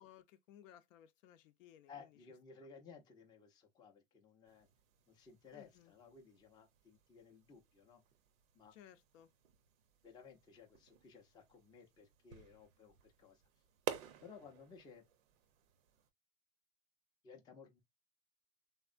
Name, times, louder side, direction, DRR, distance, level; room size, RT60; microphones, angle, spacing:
voice 1, 0.0-2.2 5.5-5.9 8.7-9.3, left 11 dB, 80° left, 0.6 m, -61 dB
voice 2, 1.9-4.7 5.1-8.0 8.5-8.7 10.0-13.4 14.2-15.0 17.2-17.8, left 5 dB, 10° left, 0.4 m, -58 dB
sound 1, 4.4-16.1, right 10 dB, 85° right, 0.7 m, -52 dB
3.5 x 2.0 x 2.4 m
supercardioid pair, 135°, 39 cm